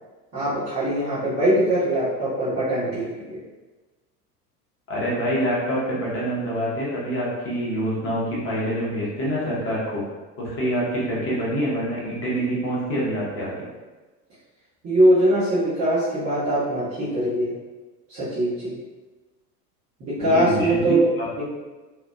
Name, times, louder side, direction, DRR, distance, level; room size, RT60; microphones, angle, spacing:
voice 1, 0.3-3.4 14.8-17.5 18.1-18.7 20.0-21.1 21.4-21.5, right 1 dB, 30° right, -14 dB, 1.2 m, -22 dB
voice 2, 4.9-10.0 10.4-13.5 20.3-21.3, equal, 25° left, -6 dB, 0.9 m, -26 dB
2.9 x 2.3 x 2.3 m, 1.2 s
figure-of-eight pair, 75°, 49 cm